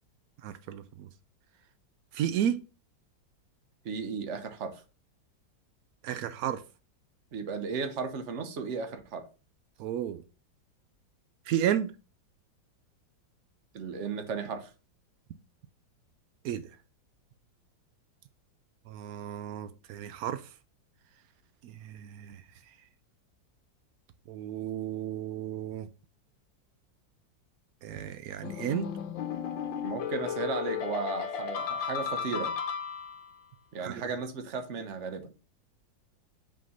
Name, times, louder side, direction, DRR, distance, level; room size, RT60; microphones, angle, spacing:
voice 1, 0.4-1.1 2.1-2.6 6.0-6.6 9.8-10.2 11.5-11.9 16.4-16.6 18.9-20.4 21.6-22.4 24.3-25.9 27.8-28.9 33.8-34.0, right 10 dB, 90° right, 0.8 m, -32 dB
voice 2, 3.8-4.8 7.3-9.3 13.7-14.7 29.8-32.5 33.7-35.3, right 5 dB, 50° right, 1.0 m, -35 dB
sound 1, 28.4-33.4, left 7 dB, 75° left, 1.6 m, -34 dB
5.4 x 3.7 x 5.4 m
omnidirectional pair, 2.1 m